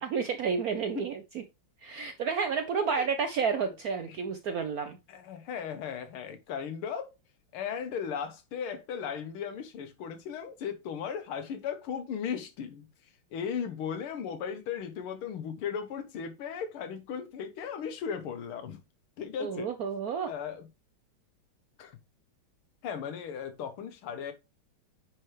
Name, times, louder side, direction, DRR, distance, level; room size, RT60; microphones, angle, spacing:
voice 1, 0.0-1.4 1.8-5.0 19.4-20.3, right 6 dB, 70° right, 0.8 m, -31 dB
voice 2, 5.1-7.2 7.5-12.8 13.3-18.8 19.2-19.7 20.3-20.7 21.8-22.0 22.8-24.3, left 7 dB, 80° left, 1.9 m, -36 dB
9.5 x 4.4 x 3.2 m
omnidirectional pair, 2.3 m